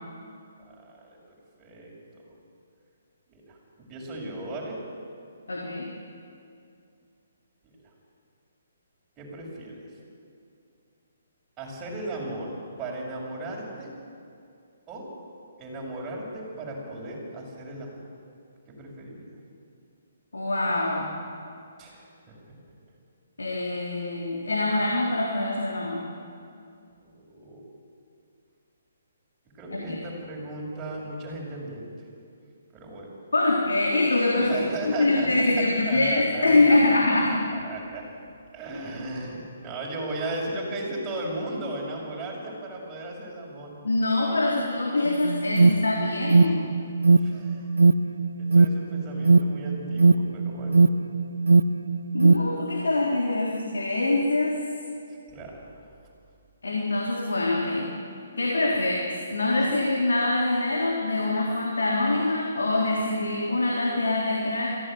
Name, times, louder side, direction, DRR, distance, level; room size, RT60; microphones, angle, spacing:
voice 1, 0.6-1.2 1.6-2.2 3.3-4.8 7.6-7.7 9.2-9.9 11.6-12.5 12.8-13.9 14.9-15.1 15.6-18.0 18.7-19.3 21.8-22.4 27.0-27.6 29.5-31.9 32.7-33.1 34.4-35.3 35.5-37.0 37.5-38.1 38.5-43.7 47.2-47.7 48.4-50.9 55.3-55.6 58.6-58.8 59.7-59.8, right 2 dB, 20° right, -3 dB, 7.2 m, -36 dB
voice 2, 5.5-5.9 20.3-21.2 23.4-26.0 29.9-30.0 33.3-37.3 43.8-46.7 52.1-54.6 56.6-57.9 58.4-58.9 59.3-64.8, left 2 dB, 85° left, -2 dB, 3.7 m, -24 dB
Alarm, 45.1-52.5, right 3 dB, 90° right, 0.8 m, -20 dB
22.5 x 16.5 x 9.4 m, 2.5 s
hypercardioid pair, 140°, 0 cm